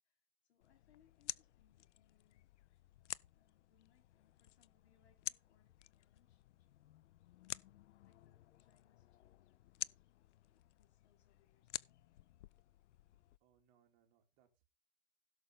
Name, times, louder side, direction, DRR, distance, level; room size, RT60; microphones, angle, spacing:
voice 1, 0.0-2.5 3.3-7.1 7.4-12.0, left 9 dB, 70° left, 2.8 m, -76 dB
sound 1, 0.6-13.4, left 14 dB, 90° left, 0.5 m, -51 dB
voice 2, 13.4-14.7, right 8 dB, 35° right, 2.2 m, -74 dB
16.5 x 6.4 x 3.4 m
hypercardioid pair, 155°, 34 cm